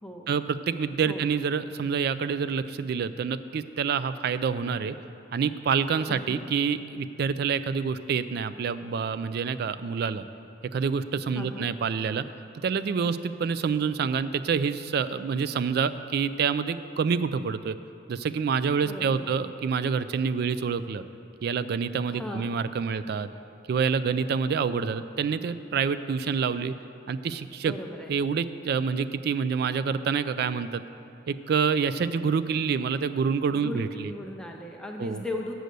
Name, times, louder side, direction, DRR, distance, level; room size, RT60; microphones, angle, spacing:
voice 1, 0.3-5.0 5.3-10.3 10.7-12.2 12.6-17.8 18.1-21.0 21.4-23.3 23.7-26.7 27.1-27.7 28.1-30.8 31.3-34.1 35.0-35.2, right 6 dB, 60° right, 13 dB, 0.3 m, -27 dB
voice 2, 6.1-6.4 11.3-11.7 18.8-19.3 22.1-22.5 27.6-28.1 33.5-35.5, left 1 dB, 5° left, 0 dB, 0.5 m, -37 dB
7.8 x 6.3 x 6.7 m, 2.7 s
head